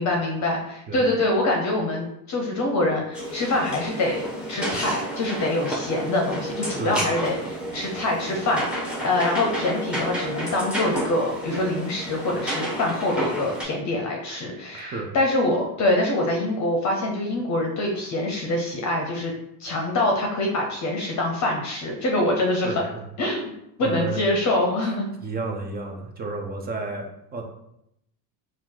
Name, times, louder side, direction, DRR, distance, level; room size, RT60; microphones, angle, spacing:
voice 1, 0.0-4.2 4.5-19.3 19.6-22.8 23.2-23.5 23.8-25.1, left 1 dB, 35° left, 1 dB, 0.6 m, -25 dB
sound 1, 3.1-13.6, right 1 dB, ahead, 0.7 m, -31 dB
voice 2, 6.8-7.1 14.7-15.1 22.6-23.1 23.8-24.2 24.8-27.4, right 3 dB, 25° right, 3 dB, 0.3 m, -32 dB
4.5 x 2.4 x 3.7 m, 0.80 s
cardioid pair, 135°, 48 cm